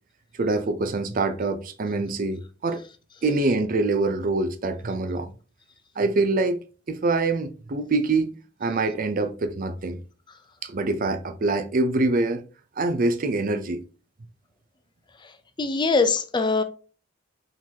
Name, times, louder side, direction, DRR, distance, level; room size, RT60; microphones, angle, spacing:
voice 1, 0.3-2.8 3.2-5.3 6.0-6.6 6.9-8.3 8.6-10.0 10.6-12.4 12.8-13.8, right 3 dB, 45° right, 0.5 m, -25 dB
voice 2, 15.6-16.6, left 4 dB, 25° left, 0.5 m, -22 dB
4.5 x 3.8 x 2.8 m
head